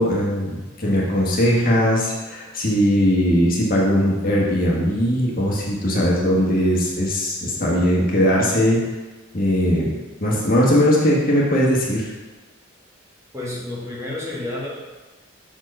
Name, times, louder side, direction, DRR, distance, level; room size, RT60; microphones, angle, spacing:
voice 1, 0.0-8.8 9.3-9.9 10.2-12.1, equal, 45° left, -4 dB, 1.5 m, -19 dB
voice 2, 13.3-14.7, left 2 dB, 15° right, -5 dB, 1.4 m, -30 dB
6.3 x 4.5 x 5.4 m, 1.2 s
head